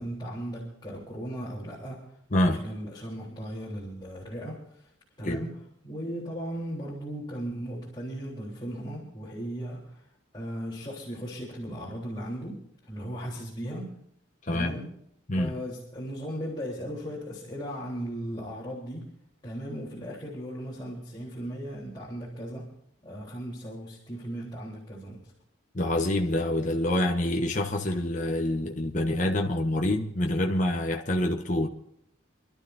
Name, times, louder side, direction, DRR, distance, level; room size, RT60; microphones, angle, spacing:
voice 1, 0.0-4.9 5.2-10.1 10.3-13.9 14.5-14.9 15.3-19.1 19.4-22.7 23.0-25.3, equal, 20° left, 3.6 m, -37 dB
voice 2, 14.5-14.8 15.3-15.5 25.7-31.7, left 1 dB, 35° left, 1.2 m, -26 dB
27.5 x 12.5 x 2.7 m
head